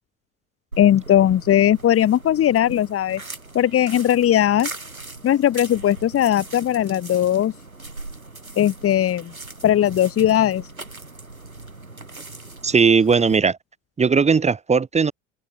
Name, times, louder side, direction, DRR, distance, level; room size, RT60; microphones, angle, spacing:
sound 1, 0.7-13.4, right 2 dB, 85° right, 5.1 m, -39 dB
voice 1, 0.8-3.2 3.5-4.7 5.2-7.5 8.6-9.3 9.6-10.6, left 11 dB, 35° left, 2.3 m, -18 dB
voice 2, 12.6-13.6 14.0-15.1, right 5 dB, 15° right, 1.3 m, -17 dB
open air
figure-of-eight pair, 70°, 41 cm